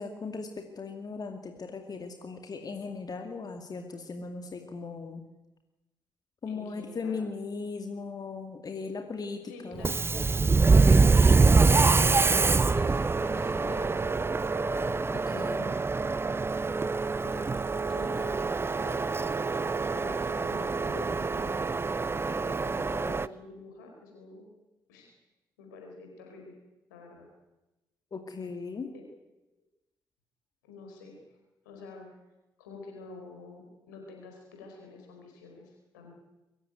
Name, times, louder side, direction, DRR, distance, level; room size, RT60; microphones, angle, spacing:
voice 1, 0.0-5.2 6.4-9.9 15.1-15.7 28.1-28.9, left 4 dB, 40° left, 5 dB, 2.3 m, -38 dB
voice 2, 6.5-7.2 9.5-10.0 10.8-14.3 15.3-15.9 17.2-17.5 17.9-19.4 19.9-21.9 22.2-24.5 24.9-25.1 25.6-26.6 26.9-27.3 28.9-29.0 30.6-31.2 31.6-32.2 32.6-36.1, left 3 dB, 75° left, 1 dB, 4.7 m, -47 dB
Subway metro underground, 9.8-23.3, right 4 dB, 25° right, 0.7 m, -25 dB
23.0 x 15.0 x 9.4 m, 1.0 s
figure-of-eight pair, 40°, 10 cm